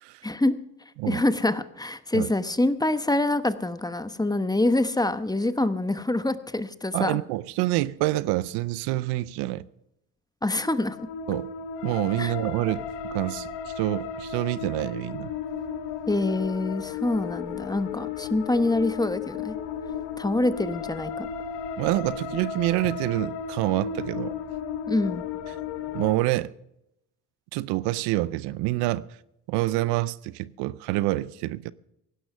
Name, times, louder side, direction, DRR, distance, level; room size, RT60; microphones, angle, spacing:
voice 1, 0.2-0.5 1.1-7.2 10.4-11.0 12.2-12.3 16.1-19.5 20.2-21.3 24.9-25.2, left 2 dB, 10° left, 1.0 m, -25 dB
voice 2, 6.9-9.6 11.3-11.5 11.8-12.8 13.1-15.3 21.8-24.4 25.9-26.5 27.5-29.1 29.5-31.7, right 17 dB, 85° right, 0.6 m, -27 dB
sound 1, 10.6-26.2, left 7 dB, 85° left, 1.3 m, -34 dB
17.0 x 11.0 x 5.6 m
supercardioid pair, 70°, 40 cm